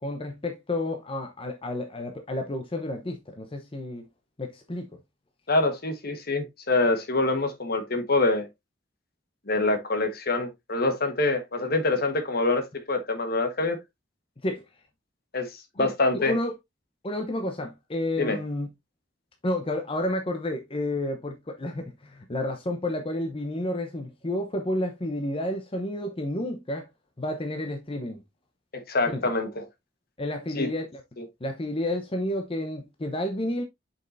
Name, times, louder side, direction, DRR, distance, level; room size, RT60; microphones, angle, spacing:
voice 1, 0.0-4.0 4.4-5.0 14.4-14.6 15.8-16.5 17.0-18.7 19.4-26.9 27.2-28.2 29.1-29.2 30.2-31.0 31.4-33.6, left 1 dB, 30° left, 0.8 m, -30 dB
voice 2, 5.5-8.5 9.5-13.8 15.3-15.5 15.8-16.3 18.2-18.4 28.7-29.6 30.5-30.7, left 2 dB, 55° left, 1.4 m, -25 dB
7.3 x 5.4 x 2.6 m
head